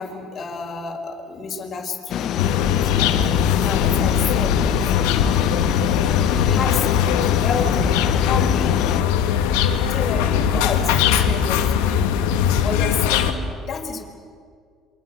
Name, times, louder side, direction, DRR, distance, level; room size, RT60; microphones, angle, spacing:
voice 1, 0.0-4.9 6.4-8.9 9.9-12.1 12.6-14.0, left 5 dB, 45° left, 3 dB, 5.0 m, -30 dB
sound 1, 2.1-9.0, left 11 dB, 60° left, 0.8 m, -26 dB
sound 2, 2.4-13.3, left 8 dB, 85° left, 2.0 m, -20 dB
28.0 x 24.0 x 7.9 m, 2.1 s
supercardioid pair, 80°, 0 cm